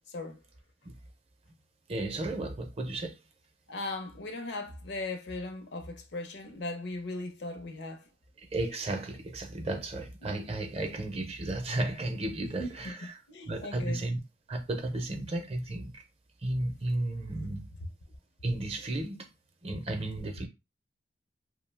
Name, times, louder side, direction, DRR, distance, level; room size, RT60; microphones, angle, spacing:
voice 1, 0.1-0.4 3.7-8.1 10.2-10.4 12.4-12.9 13.3-14.0, left 2 dB, 65° left, 0.6 m, -38 dB
voice 2, 1.9-3.2 8.5-13.1 13.5-14.2 14.5-16.0 16.4-17.7 18.4-19.3 19.6-20.5, right 2 dB, 35° right, 0.5 m, -33 dB
2.6 x 2.0 x 3.2 m
head